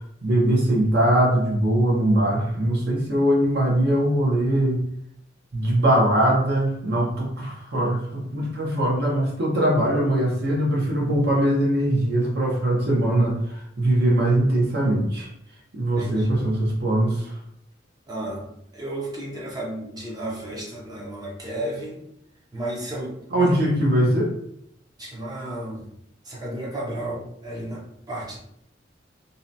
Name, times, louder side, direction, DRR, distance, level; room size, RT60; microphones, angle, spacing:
voice 1, 0.0-4.8 5.5-15.3 15.7-17.4 23.3-24.3, right 1 dB, 55° right, -2 dB, 0.7 m, -21 dB
voice 2, 16.0-16.4 18.1-18.5 18.7-22.0 22.5-23.6 25.0-25.9 26.2-28.4, right 1 dB, 20° right, -3 dB, 0.5 m, -33 dB
2.7 x 2.1 x 2.6 m, 0.73 s
head